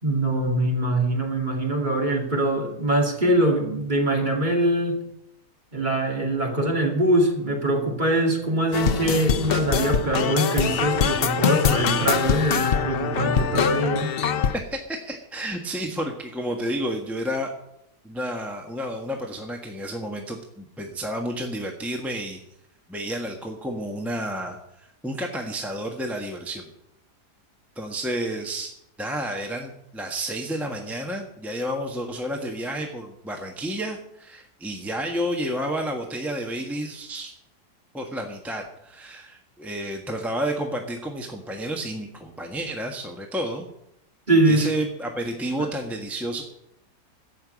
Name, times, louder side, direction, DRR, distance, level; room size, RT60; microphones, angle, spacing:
voice 1, 0.0-5.0 5.7-14.2 44.3-44.7, right 1 dB, 25° right, 0 dB, 2.6 m, -23 dB
sound 1, 8.7-14.6, left 7 dB, 75° left, 0.5 m, -23 dB
voice 2, 14.5-17.5 18.0-22.4 22.9-26.7 27.7-28.7 29.0-37.3 37.9-43.7 44.4-46.4, right 1 dB, ahead, 1 dB, 1.3 m, -31 dB
14.5 x 5.9 x 9.5 m, 0.80 s
omnidirectional pair, 1.8 m